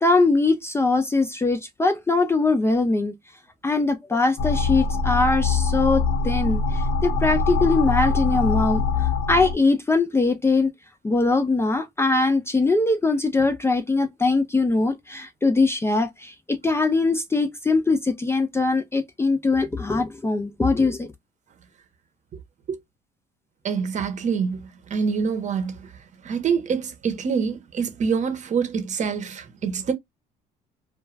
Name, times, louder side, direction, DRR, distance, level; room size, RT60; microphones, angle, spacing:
voice 1, 0.0-3.1 3.6-10.7 11.0-21.1, left 3 dB, 15° left, 0.4 m, -22 dB
sound 1, 4.4-9.5, left 4 dB, 65° left, 0.7 m, -23 dB
voice 2, 23.6-25.9 26.2-29.9, right 6 dB, 45° right, 0.8 m, -26 dB
2.3 x 2.2 x 3.1 m
cardioid pair, 110°, 17 cm